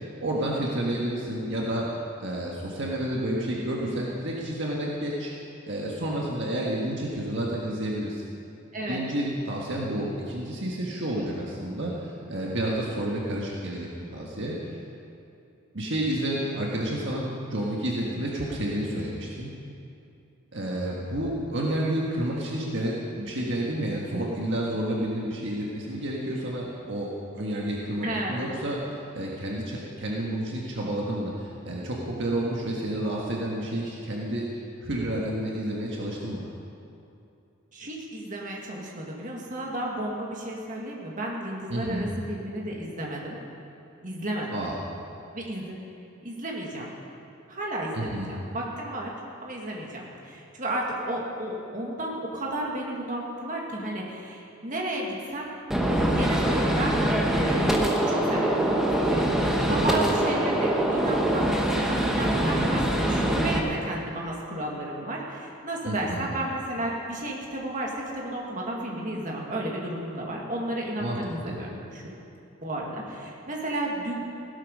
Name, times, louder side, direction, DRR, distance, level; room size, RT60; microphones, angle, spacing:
voice 1, 0.2-1.8 2.2-5.3 5.7-8.3 8.9-14.6 15.7-19.5 20.5-34.4 34.8-36.5 41.7-42.1 44.5-44.7 47.9-48.3 59.6-60.2 65.8-66.3 71.0-71.2 71.4-71.6, right 1 dB, 55° right, -3 dB, 1.6 m, -30 dB
voice 2, 8.7-9.0 28.0-28.5 37.7-43.4 44.0-44.6 45.3-45.8 46.2-46.9 47.5-49.1 49.4-55.5 56.1-57.0 57.3-57.7 58.1-72.0 72.6-74.1, right 1 dB, 35° right, -2 dB, 2.1 m, -33 dB
Gunshot gunfire, 55.7-63.6, right 1 dB, ahead, 1.1 m, -24 dB
16.5 x 12.5 x 5.4 m, 2.7 s
head